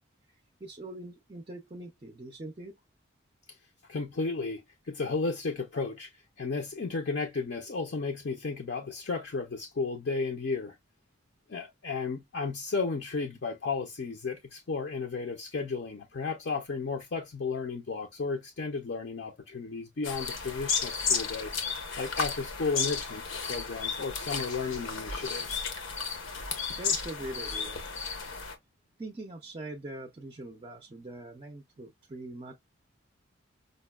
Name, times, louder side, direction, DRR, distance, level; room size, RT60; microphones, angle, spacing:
voice 1, 0.3-2.8 26.8-27.9 29.0-32.5, right 1 dB, 25° right, 0.4 m, -42 dB
voice 2, 3.9-10.8 11.5-21.5 22.0-25.6, left 4 dB, 55° left, 0.5 m, -33 dB
sound 1, 20.0-28.5, left 5 dB, 90° left, 0.9 m, -33 dB
5.1 x 2.1 x 2.2 m
head